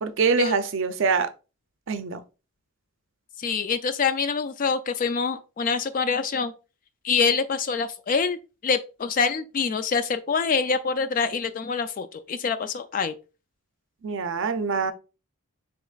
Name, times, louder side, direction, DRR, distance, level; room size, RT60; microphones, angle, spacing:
voice 1, 0.0-1.3 1.9-2.2 14.0-14.9, right 5 dB, 55° right, 0.5 m, -24 dB
voice 2, 3.4-6.5 7.0-8.4 8.6-13.2, left 5 dB, 35° left, 0.3 m, -25 dB
7.2 x 3.0 x 2.4 m
head